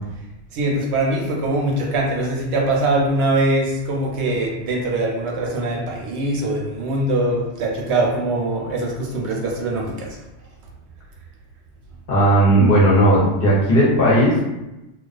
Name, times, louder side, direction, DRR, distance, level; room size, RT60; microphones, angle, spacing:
voice 1, 0.5-10.2, right 2 dB, 70° right, -2 dB, 0.8 m, -22 dB
voice 2, 12.1-14.4, right 1 dB, 60° left, -6 dB, 0.7 m, -15 dB
2.3 x 2.3 x 2.4 m, 0.98 s
omnidirectional pair, 1.2 m